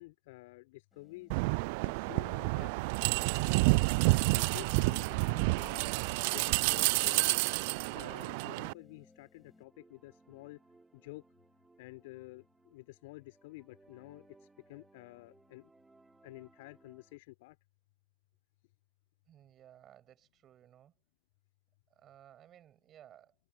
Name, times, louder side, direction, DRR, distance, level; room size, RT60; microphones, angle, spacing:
voice 1, 0.0-1.4 1.8-2.7 3.4-3.8 4.3-5.9 6.3-7.3 7.9-10.6 10.9-11.2 11.8-15.7 16.2-17.6, left 22 dB, 55° left, 5.7 m, -50 dB
sound 1, 0.9-9.6, left 2 dB, 10° left, 5.6 m, -65 dB
sound 2, 1.3-8.7, right 29 dB, 50° right, 0.4 m, -29 dB
sound 3, 9.3-17.2, right 3 dB, 10° right, 5.4 m, -65 dB
voice 2, 19.3-20.9 21.9-23.3, right 11 dB, 30° right, 6.8 m, -58 dB
hypercardioid pair, 100°, 0 cm